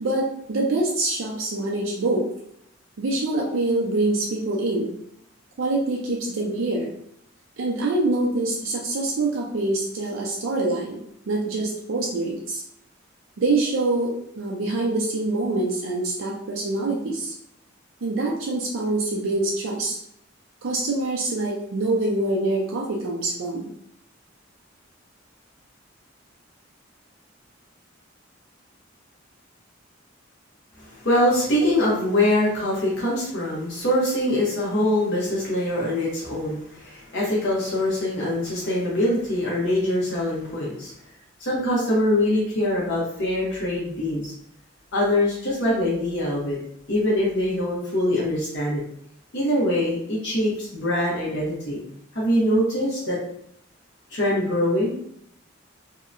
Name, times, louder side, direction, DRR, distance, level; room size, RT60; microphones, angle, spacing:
voice 1, 0.0-2.3 3.0-4.9 5.6-6.9 7.6-11.0 11.3-12.6 13.4-17.3 18.0-20.0 20.6-23.7 31.6-31.7, right 2 dB, 80° right, -2 dB, 0.5 m, -25 dB
voice 2, 30.8-40.9 41.4-44.3 44.9-46.6 46.9-48.8 49.3-51.8 52.1-53.2 54.1-54.9, left 1 dB, 60° left, -5 dB, 0.8 m, -23 dB
2.7 x 2.1 x 2.4 m, 0.71 s
head